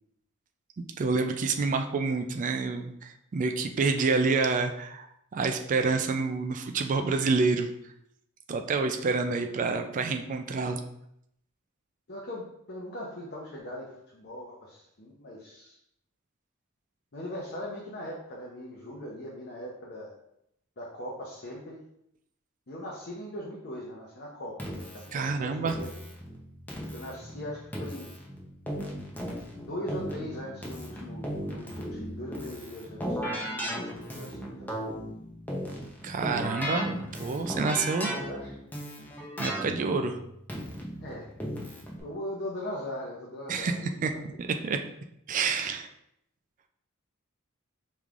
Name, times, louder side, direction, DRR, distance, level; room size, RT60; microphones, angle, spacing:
voice 1, 1.0-5.1 5.3-7.7 8.5-10.8 25.1-25.8 36.0-38.1 39.4-40.2 43.5-43.8 44.0-44.1 44.4-44.8 45.3-45.9, right 4 dB, 40° right, 7 dB, 0.3 m, -28 dB
voice 2, 12.1-15.8 17.1-20.1 20.8-21.8 22.7-25.9 26.9-28.2 29.6-34.8 38.0-38.5 41.0-41.3 42.0-44.8, left 1 dB, 50° left, -4 dB, 0.7 m, -40 dB
Keyboard (musical), 24.6-42.0, equal, 10° left, 0.7 m, -37 dB
5.2 x 3.1 x 2.4 m, 0.77 s
head